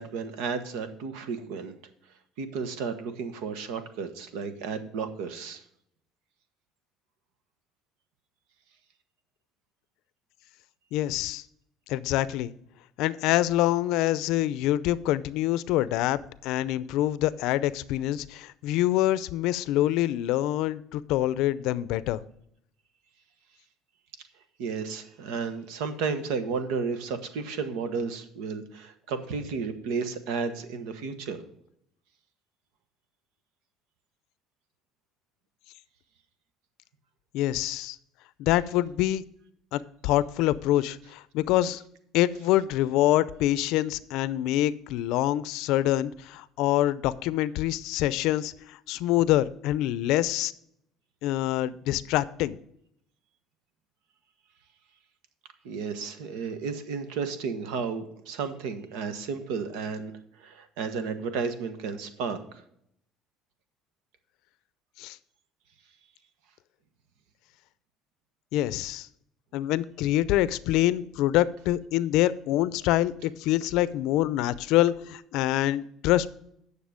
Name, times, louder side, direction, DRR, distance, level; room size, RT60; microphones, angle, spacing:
voice 1, 0.0-1.7 2.4-5.6 24.6-31.4 55.6-60.1 60.4-62.4, right 5 dB, 90° right, 10 dB, 1.2 m, -33 dB
voice 2, 10.9-11.4 11.9-12.5 13.0-22.2 37.3-38.0 38.4-39.2 39.7-41.8 42.1-50.5 51.2-52.6 65.0-65.2 68.5-69.1 69.5-76.3, left 14 dB, 75° left, 17 dB, 0.5 m, -25 dB
9.5 x 6.8 x 5.0 m, 0.72 s
cardioid pair, 135°, 0 cm